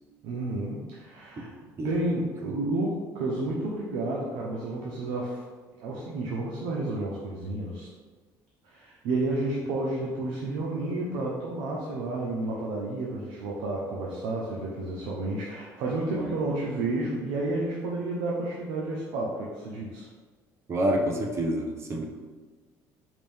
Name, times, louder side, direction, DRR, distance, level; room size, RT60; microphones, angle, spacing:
voice 1, 0.2-1.5 1.8-5.4 5.8-7.9 8.6-20.1, right 2 dB, 85° right, -3 dB, 0.7 m, -31 dB
voice 2, 20.7-22.1, right 1 dB, 35° right, 1 dB, 0.8 m, -27 dB
5.0 x 2.6 x 3.6 m, 1.4 s
cardioid pair, 105°, 8 cm